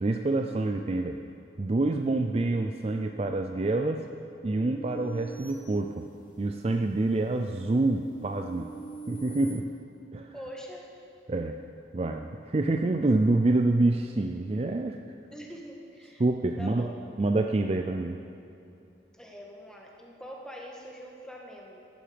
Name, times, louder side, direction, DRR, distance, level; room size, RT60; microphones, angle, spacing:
voice 1, 0.0-1.2 1.6-4.1 4.4-6.0 6.4-8.7 9.1-9.7 10.1-10.3 11.3-11.6 11.9-15.0 16.2-16.9 17.2-18.2, right 2 dB, 35° right, 5 dB, 0.4 m, -27 dB
sound 1, 4.5-6.5 7.0-9.5, right 4 dB, 45° left, 3.2 m, -45 dB
voice 2, 10.3-10.9 15.3-16.2 16.6-16.9 19.1-21.8, equal, 5° left, -2 dB, 1.5 m, -44 dB
14.5 x 11.5 x 5.1 m, 2.6 s
head